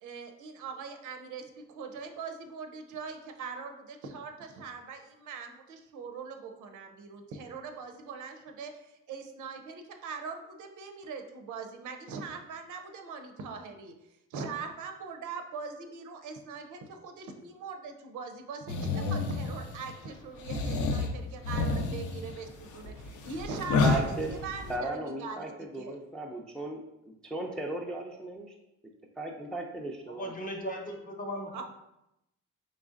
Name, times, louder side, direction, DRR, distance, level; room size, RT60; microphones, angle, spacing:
voice 1, 0.0-13.9 14.3-24.2 24.4-26.0 31.5-31.6, right 5 dB, 80° right, 6 dB, 0.6 m, -41 dB
sound 1, 18.7-19.9 20.4-24.7, left 3 dB, 75° left, 0.6 m, -30 dB
voice 2, 23.8-24.3 24.7-26.8 27.1-28.5 29.2-30.4, right 2 dB, 5° left, 0 dB, 0.4 m, -36 dB
voice 3, 30.2-31.6, equal, 30° left, 2 dB, 0.8 m, -37 dB
3.9 x 3.2 x 2.4 m, 0.88 s
cardioid pair, 90°, 30 cm